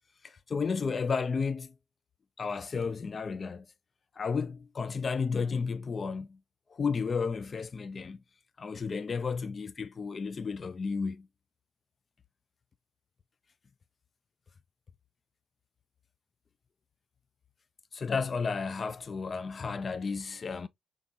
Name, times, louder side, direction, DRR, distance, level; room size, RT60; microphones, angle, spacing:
voice 1, 0.2-1.7 2.4-3.6 4.2-6.4 6.7-8.2 8.6-11.3 17.9-20.7, left 5 dB, 40° left, 0.3 m, -32 dB
3.7 x 3.0 x 2.5 m
cardioid pair, 90°, 0 cm